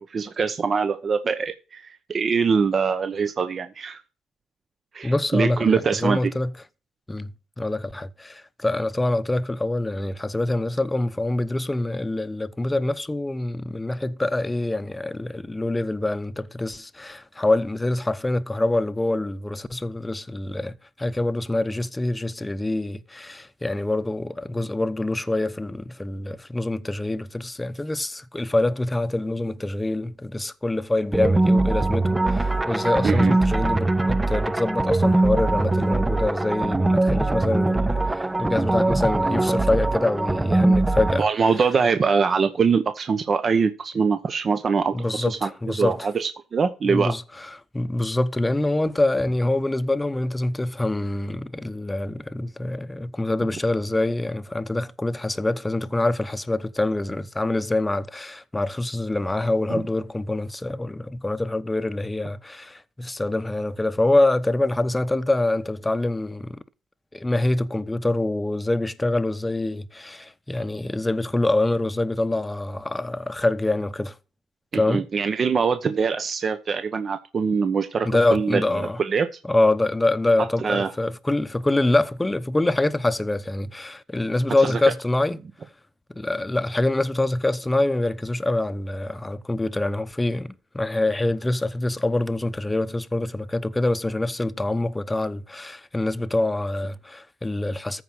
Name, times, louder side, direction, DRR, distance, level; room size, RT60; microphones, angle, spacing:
voice 1, 0.0-4.0 4.9-6.3 33.0-33.3 41.2-47.1 59.7-59.8 74.7-79.3 80.6-80.9 84.6-84.7, right 5 dB, 45° right, 1.0 m, -23 dB
voice 2, 5.0-6.5 7.1-41.3 44.9-46.1 46.8-66.6 67.1-74.1 74.7-75.1 78.0-79.0 79.4-85.4 86.1-98.0, left 2 dB, 15° left, 0.9 m, -25 dB
sound 1, 31.1-41.2, right 2 dB, 15° right, 0.5 m, -21 dB
14.0 x 4.8 x 6.1 m
cardioid pair, 90°, 0 cm